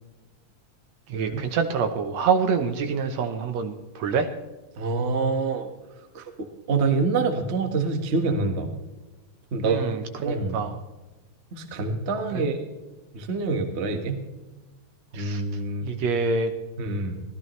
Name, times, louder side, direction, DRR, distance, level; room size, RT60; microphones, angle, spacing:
voice 1, 1.1-4.3 9.6-10.8 12.3-12.4 15.1-15.4 15.8-16.5, right 5 dB, 70° right, 7 dB, 2.1 m, -26 dB
voice 2, 4.8-5.7 6.1-8.7 9.5-9.8 10.2-10.6 11.5-12.7 13.1-14.2 15.1-15.9 16.8-17.2, right 3 dB, 35° right, 5 dB, 1.2 m, -26 dB
24.5 x 16.5 x 3.2 m, 1.1 s
omnidirectional pair, 3.4 m